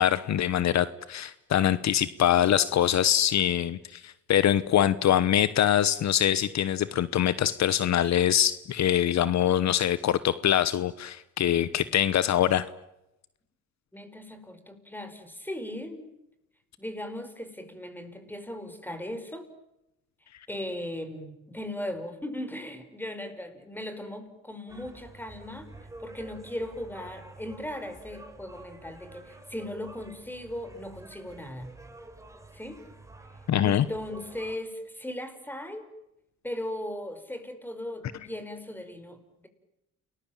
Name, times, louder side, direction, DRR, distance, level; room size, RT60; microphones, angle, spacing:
voice 1, 0.0-12.6 33.5-33.8, left 11 dB, 65° left, 16 dB, 1.1 m, -24 dB
voice 2, 13.9-16.1 16.8-19.5 20.5-25.7 26.0-31.7 32.5-32.8 33.6-35.9 36.4-39.5, left 1 dB, 5° left, 9 dB, 5.5 m, -38 dB
sound 1, 24.7-34.5, right 2 dB, 10° right, 5.4 m, -49 dB
29.5 x 21.0 x 9.0 m, 0.88 s
cardioid pair, 90°, 30 cm